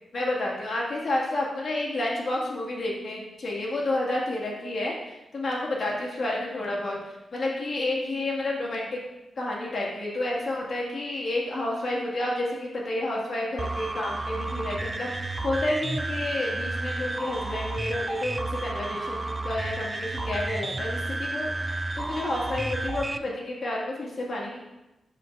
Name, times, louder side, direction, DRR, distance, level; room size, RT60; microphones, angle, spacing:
voice 1, 0.1-7.1 7.3-9.0 9.4-24.6, left 1 dB, 55° left, -3 dB, 2.1 m, -30 dB
sound 1, 13.6-23.2, right 2 dB, 25° right, 0.3 m, -31 dB
8.6 x 6.1 x 2.6 m, 0.98 s
cardioid pair, 70°, 0 cm